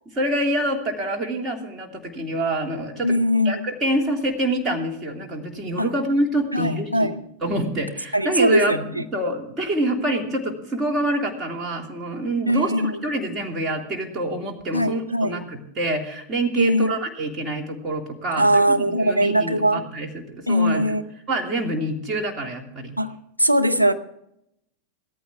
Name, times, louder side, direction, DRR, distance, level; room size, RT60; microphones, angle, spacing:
voice 1, 0.1-3.2 3.4-7.1 7.4-8.8 9.1-21.0 21.3-23.0, right 1 dB, 25° right, 2 dB, 2.7 m, -26 dB
voice 2, 3.0-3.7 5.8-5.9 6.5-7.1 8.1-9.0 12.5-13.0 14.7-15.4 16.6-16.9 18.4-19.9 20.5-21.0 23.0-23.1 23.4-23.9, equal, 90° right, 5 dB, 0.8 m, -20 dB
17.0 x 14.0 x 3.5 m, 0.78 s
figure-of-eight pair, 90°, 0 cm